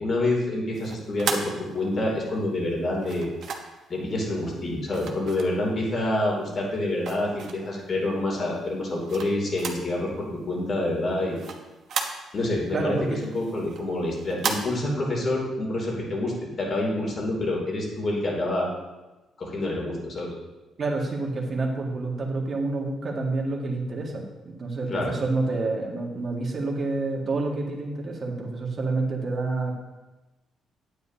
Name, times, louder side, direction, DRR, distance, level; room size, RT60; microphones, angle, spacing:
voice 1, 0.0-3.3 3.9-11.4 12.3-12.9 13.3-18.7 19.4-20.3 24.9-25.1, left 1 dB, 45° left, -2 dB, 2.9 m, -27 dB
sound 1, 0.7-2.2 3.0-3.9 4.9-6.0 6.4-7.8 8.3-10.0 10.2-10.3 10.7-12.6 13.0-14.6, right 5 dB, 65° right, 1.0 m, -34 dB
voice 2, 12.7-13.2 20.8-29.8, right 3 dB, 45° right, -1 dB, 1.8 m, -28 dB
9.5 x 9.2 x 2.8 m, 1.1 s
cardioid pair, 90°, 0 cm